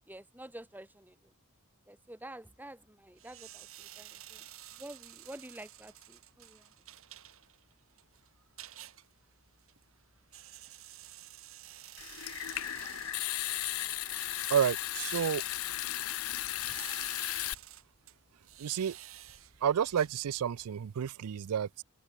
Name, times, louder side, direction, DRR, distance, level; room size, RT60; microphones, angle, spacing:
voice 1, 0.1-1.3 1.9-4.5 4.7-6.7, right 1 dB, 10° right, 2.0 m, -49 dB
sound 1, 3.2-20.7, right 12 dB, 65° right, 3.7 m, -52 dB
Water tap faucet / Sink (filling or washing) / Trickle dribble, 12.0-17.5, left 14 dB, 65° left, 0.6 m, -35 dB
voice 2, 14.5-15.4 18.6-19.0 19.6-21.8, right 8 dB, 85° right, 0.4 m, -30 dB
open air
head